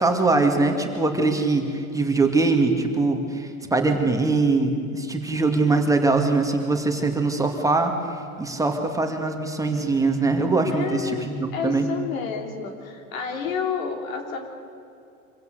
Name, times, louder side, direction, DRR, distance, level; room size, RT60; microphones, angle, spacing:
voice 1, 0.0-7.9 8.4-11.9, right 3 dB, 10° right, 3 dB, 2.3 m, -22 dB
voice 2, 10.7-11.3 11.5-14.5, left 6 dB, 75° left, 4 dB, 3.5 m, -30 dB
25.5 x 16.0 x 8.0 m, 2.5 s
hypercardioid pair, 110°, 42 cm